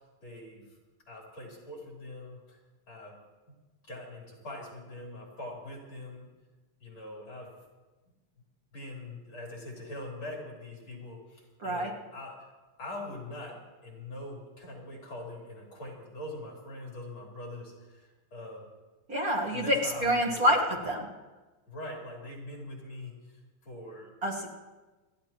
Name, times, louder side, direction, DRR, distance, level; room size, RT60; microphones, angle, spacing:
voice 1, 0.2-0.6 1.1-2.6 2.9-3.1 3.5-3.6 3.9-6.3 6.8-7.6 8.7-12.3 12.8-18.6 19.5-20.7 21.7-23.1 23.6-24.1, left 1 dB, 65° left, -3 dB, 4.4 m, -43 dB
voice 2, 11.6-11.9 19.1-21.1 24.2-24.5, equal, 45° right, -2 dB, 1.9 m, -27 dB
29.0 x 11.0 x 3.0 m, 1.2 s
omnidirectional pair, 2.4 m